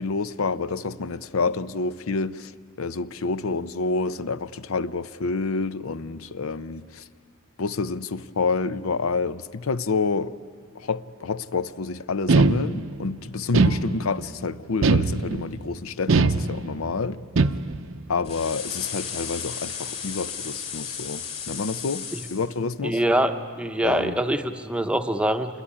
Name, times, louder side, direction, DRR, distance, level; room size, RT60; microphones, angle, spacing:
voice 1, 0.0-2.5 2.8-7.0 7.6-10.4 10.7-17.2 18.1-22.1 22.3-23.0 23.8-24.2, left 4 dB, 80° left, 0.6 m, -28 dB
sound 1, 12.3-13.1 13.5-14.3 14.8-15.6 16.1-16.9 17.4-18.0, right 3 dB, 65° right, 0.6 m, -21 dB
sound 2, 18.2-22.4, left 7 dB, 35° left, 3.8 m, -34 dB
voice 2, 22.8-25.5, right 1 dB, 5° right, 0.8 m, -24 dB
27.0 x 21.5 x 9.9 m
head